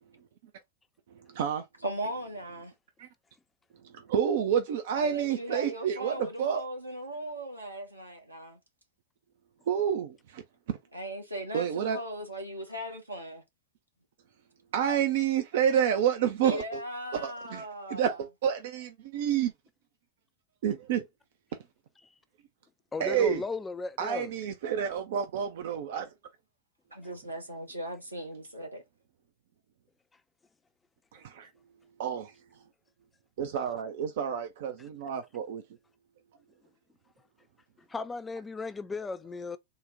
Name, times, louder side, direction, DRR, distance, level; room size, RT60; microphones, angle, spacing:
voice 1, 1.3-1.6 3.0-3.1 3.9-6.6 9.7-10.4 11.5-12.0 14.7-16.8 17.1-17.6 17.9-19.5 20.6-21.1 23.0-23.4 24.0-26.1 31.1-31.5 32.0-32.3 33.4-35.6, right 8 dB, 55° right, 0.4 m, -29 dB
voice 2, 1.8-2.7 4.9-8.6 10.9-13.4 16.4-18.1 26.9-28.8, right 1 dB, 85° right, 1.0 m, -38 dB
voice 3, 22.9-24.3 37.9-39.6, left 4 dB, 15° left, 0.3 m, -36 dB
3.9 x 2.1 x 3.4 m
figure-of-eight pair, 90°, 0 cm